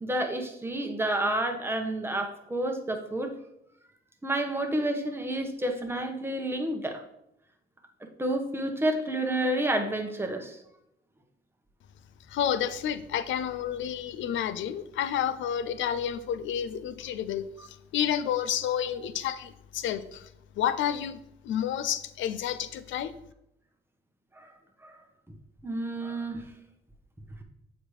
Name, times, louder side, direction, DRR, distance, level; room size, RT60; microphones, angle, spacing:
voice 1, 0.0-3.3 4.2-7.0 8.2-10.6 24.4-24.5 24.8-25.0 25.6-26.4, right 1 dB, 10° right, 4 dB, 1.0 m, -29 dB
voice 2, 12.3-20.3 20.6-23.1, left 9 dB, 75° left, 13 dB, 0.5 m, -30 dB
7.2 x 5.0 x 3.2 m, 0.80 s
cardioid pair, 90°, 20 cm